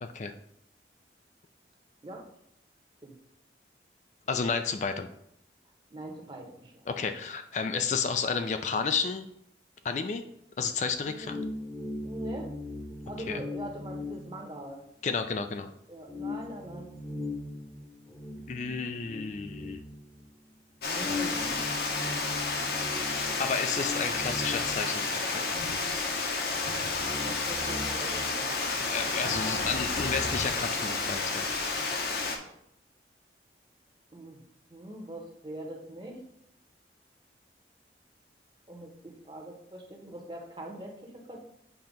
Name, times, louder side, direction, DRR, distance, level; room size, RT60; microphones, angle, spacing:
voice 1, 0.0-0.3 4.3-5.1 6.9-9.2 9.8-10.2 10.6-11.4 13.3-13.4 15.0-15.7 18.5-19.8 23.4-25.4 28.9-31.5, left 5 dB, 40° left, 8 dB, 0.4 m, -31 dB
voice 2, 5.9-6.8 11.0-11.4 12.0-12.5 13.1-14.8 15.9-16.9 20.8-21.8 27.1-28.5 34.1-34.4 34.7-36.2 38.7-41.4, right 1 dB, 25° right, 1 dB, 1.0 m, -42 dB
sound 1, 10.8-15.2 15.5-15.6 16.1-20.5 21.0-25.7 26.0-26.1 26.5-29.0 29.2-30.5, left 2 dB, 15° left, 0.9 m, -40 dB
Water, 20.8-32.4, left 3 dB, 60° left, 0.9 m, -31 dB
7.6 x 2.9 x 5.2 m, 0.75 s
head